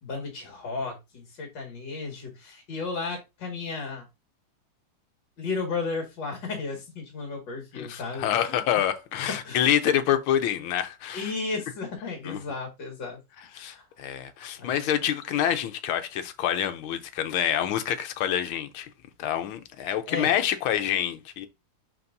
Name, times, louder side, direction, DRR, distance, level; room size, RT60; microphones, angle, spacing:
voice 1, 0.0-4.1 5.4-8.6 9.4-9.7 11.1-13.2 13.5-13.8 14.6-14.8 20.1-20.3, left 4 dB, 65° left, 2.6 m, -34 dB
voice 2, 7.8-11.3 12.3-12.4 13.5-18.9 19.2-21.5, left 10 dB, 85° left, 1.6 m, -27 dB
10.5 x 3.6 x 2.6 m
omnidirectional pair, 2.2 m